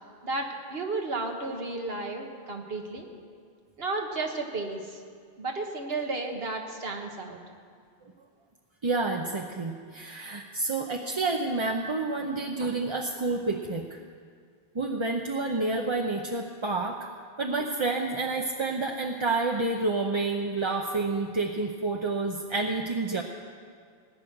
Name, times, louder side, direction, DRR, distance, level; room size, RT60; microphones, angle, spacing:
voice 1, 0.2-3.1 3.8-5.0 5.4-7.4, right 3 dB, 70° right, 3 dB, 1.7 m, -33 dB
voice 2, 8.8-14.0 14.7-17.1 17.4-23.2, right 3 dB, 30° right, 1 dB, 0.7 m, -29 dB
18.5 x 6.3 x 9.9 m, 2.1 s
omnidirectional pair, 1.1 m